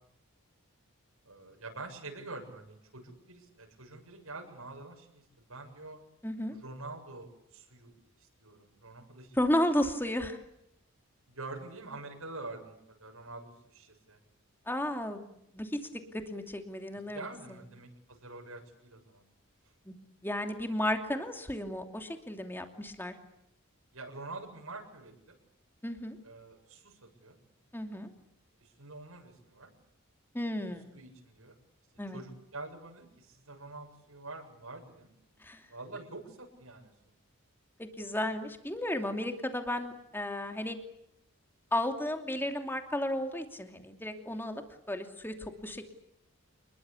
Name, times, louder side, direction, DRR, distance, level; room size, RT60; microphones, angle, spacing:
voice 1, 1.3-5.2 5.5-6.0 6.5-9.3 11.3-14.2 17.1-19.3 23.9-25.3 26.2-27.4 28.6-29.7 30.9-31.6 32.1-35.1 35.7-36.9, right 2 dB, 70° right, 1 dB, 7.5 m, -46 dB
voice 2, 6.2-6.5 9.3-10.4 14.7-17.6 19.9-20.0 20.2-23.1 25.8-26.2 27.7-28.1 30.3-31.0 32.0-32.2 35.4-35.6 37.8-40.8 41.7-45.9, left 1 dB, 10° left, 6 dB, 2.8 m, -33 dB
28.5 x 22.0 x 8.5 m, 0.77 s
head